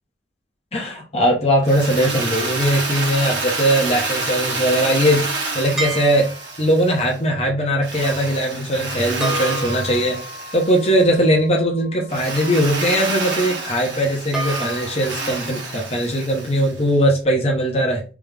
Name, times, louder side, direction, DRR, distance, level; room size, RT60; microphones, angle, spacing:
voice 1, 0.7-5.3 5.5-6.3 6.6-10.2 10.5-18.0, equal, 35° left, -1 dB, 0.9 m, -20 dB
Drill, 1.6-7.2 7.8-11.1 12.1-16.9, right 3 dB, 75° right, 1.3 m, -28 dB
sound 1, 5.8-6.8 9.2-12.3 14.3-15.3, right 2 dB, 5° right, 1.2 m, -31 dB
3.5 x 3.0 x 3.3 m, 0.35 s
head